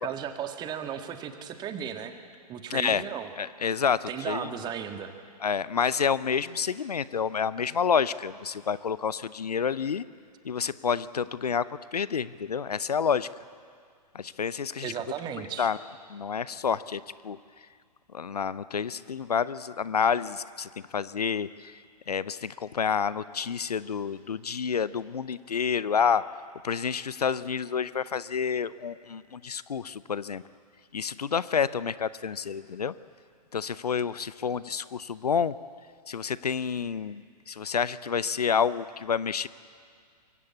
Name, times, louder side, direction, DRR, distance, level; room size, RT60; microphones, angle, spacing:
voice 1, 0.0-2.1 2.5-3.3 4.1-5.1 14.8-15.7, right 9 dB, 20° right, 7 dB, 1.7 m, -35 dB
voice 2, 2.7-3.0 3.4-4.5 5.4-10.0 10.4-11.7 11.9-13.3 14.1-14.9 15.6-15.8 16.1-17.4 18.1-21.7 22.1-26.2 26.6-30.4 30.9-32.9 33.5-35.6 36.1-39.5, left 6 dB, 70° left, 18 dB, 0.7 m, -29 dB
24.5 x 22.0 x 8.5 m, 2.1 s
figure-of-eight pair, 115°, 21 cm